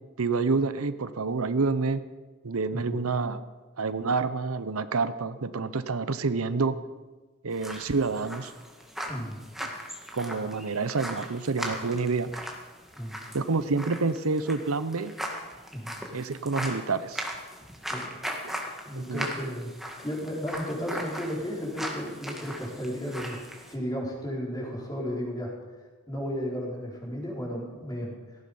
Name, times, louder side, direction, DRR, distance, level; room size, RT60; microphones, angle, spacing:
voice 1, 0.2-2.0 2.4-3.4 3.8-6.8 7.4-8.5 9.6-9.7 10.1-12.4 13.3-15.1 16.1-17.3 18.4-18.5 18.9-19.3, right 4 dB, 90° right, 13 dB, 0.8 m, -28 dB
sound 1, 7.5-23.7, equal, ahead, 1.9 m, -39 dB
voice 2, 9.0-9.4 12.9-13.2 15.7-16.0 17.9-18.1 18.8-19.7 20.0-23.4 23.7-25.5 26.1-28.1, equal, 20° left, -3 dB, 4.4 m, -34 dB
17.5 x 14.5 x 5.5 m, 1.3 s
head